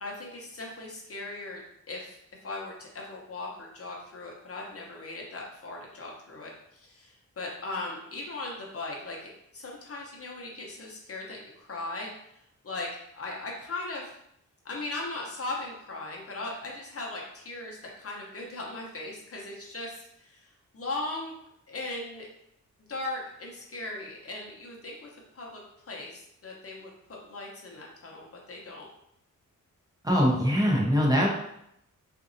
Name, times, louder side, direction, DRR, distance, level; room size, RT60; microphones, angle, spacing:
voice 1, 0.0-1.6 1.9-12.1 12.6-12.9 13.1-14.2 14.6-21.3 21.7-22.3 22.9-28.9, left 2 dB, 45° left, -2 dB, 0.8 m, -38 dB
voice 2, 30.0-31.3, equal, 10° right, -4 dB, 0.7 m, -22 dB
4.0 x 2.6 x 2.6 m, 0.77 s
wide cardioid pair, 115°, 32 cm